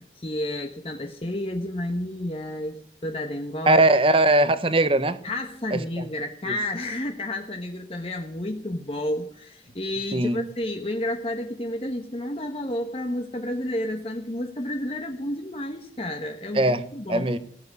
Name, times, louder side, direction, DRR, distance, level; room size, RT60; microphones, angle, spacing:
voice 1, 0.0-3.8 5.2-17.4, left 1 dB, 35° left, 4 dB, 1.3 m, -31 dB
voice 2, 3.7-5.2 10.1-10.4 16.5-16.8 17.1-17.4, right 2 dB, 30° right, 12 dB, 1.1 m, -19 dB
17.0 x 8.0 x 9.9 m, 0.63 s
head